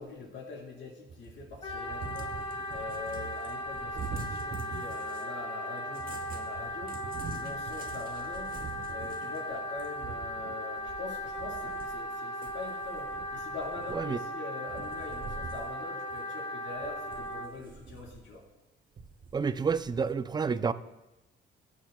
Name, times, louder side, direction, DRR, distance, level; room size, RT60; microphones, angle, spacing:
voice 1, 0.0-7.0 7.3-8.5 8.9-18.4, left 3 dB, 70° left, 3.5 m, -43 dB
Cat, 1.1-5.3 5.9-12.1 12.4-14.3 14.7-15.7 16.1-16.2 16.8-18.3 19.0-20.1, right 5 dB, 45° right, 0.9 m, -45 dB
Wind instrument woodwind instrument, 1.6-17.5, left 1 dB, 25° left, 1.3 m, -37 dB
voice 2, 19.3-20.7, right 5 dB, 20° right, 0.4 m, -29 dB
18.5 x 7.2 x 2.2 m
cardioid pair, 90°, 20 cm